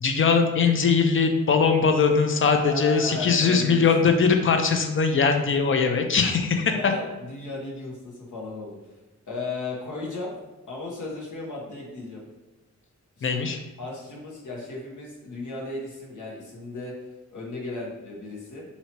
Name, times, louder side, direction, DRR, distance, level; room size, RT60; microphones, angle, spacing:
voice 1, 0.0-6.9 13.2-13.6, left 5 dB, 40° left, 5 dB, 0.5 m, -21 dB
voice 2, 2.7-4.1 6.7-8.8 9.3-10.3 10.7-12.2 13.2-13.3 13.8-16.9 17.3-18.6, left 3 dB, 75° left, -3 dB, 1.2 m, -35 dB
2.9 x 2.8 x 4.4 m, 1.1 s
wide cardioid pair, 85°, 31 cm